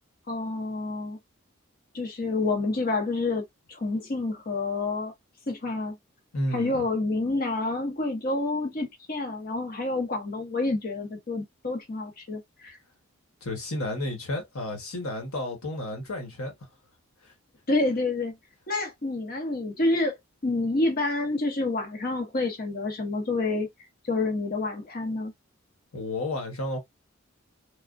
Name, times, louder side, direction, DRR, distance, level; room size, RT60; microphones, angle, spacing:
voice 1, 0.3-1.2 1.9-3.4 3.7-5.1 5.5-6.0 6.5-12.8 17.7-18.4 18.7-20.2 20.4-23.7 24.0-25.3, left 2 dB, 45° left, 0.8 m, -28 dB
voice 2, 6.3-6.8 13.4-16.5 25.9-26.8, left 1 dB, 85° left, 1.2 m, -32 dB
3.3 x 2.1 x 2.5 m
head